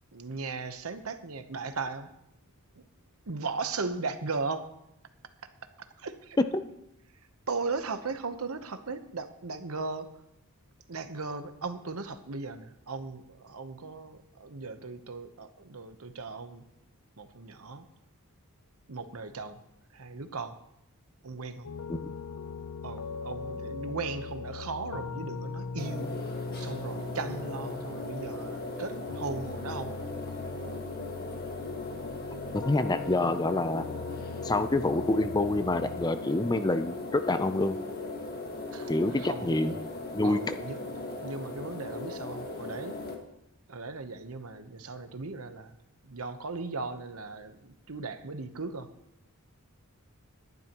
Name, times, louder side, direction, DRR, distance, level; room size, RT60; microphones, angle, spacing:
voice 1, 0.1-2.1 2.7-2.8 3.3-4.7 5.8-6.4 7.5-10.1 10.9-16.6 17.2-17.8 18.9-19.6 19.9-20.6 21.2-21.7 22.8-30.0 38.7-38.9 39.2-39.5 40.2-40.8 41.2-43.0 43.7-45.8 46.0-48.9, right 4 dB, 75° right, 9 dB, 1.0 m, -37 dB
sound 1, 21.6-36.1, left 4 dB, 85° left, 0.6 m, -40 dB
sound 2, 25.8-43.1, left 2 dB, 45° left, 1.6 m, -38 dB
voice 2, 32.5-33.8 34.4-37.8 38.9-39.7 40.1-40.5, left 2 dB, 20° left, 10 dB, 0.5 m, -27 dB
19.5 x 11.0 x 3.0 m, 0.81 s
head